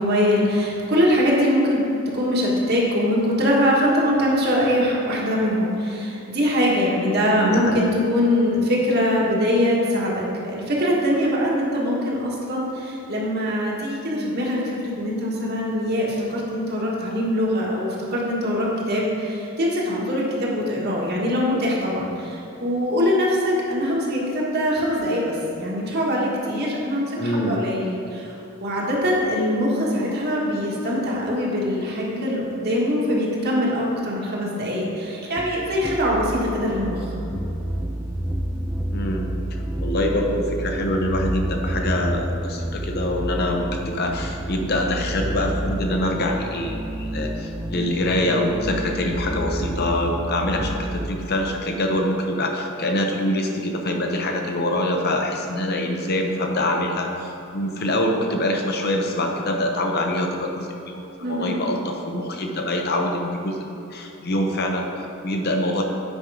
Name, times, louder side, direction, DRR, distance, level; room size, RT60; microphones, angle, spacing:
voice 1, 0.0-1.8 2.1-28.3 28.6-37.0 61.2-61.6, equal, 50° right, -4 dB, 1.6 m, -22 dB
voice 2, 7.3-7.9 27.2-27.6 38.9-39.3 39.8-65.8, left 1 dB, 50° left, 2 dB, 0.7 m, -25 dB
sound 1, 35.4-51.1, right 1 dB, 10° right, 0.3 m, -29 dB
8.8 x 5.4 x 4.9 m, 2.9 s
head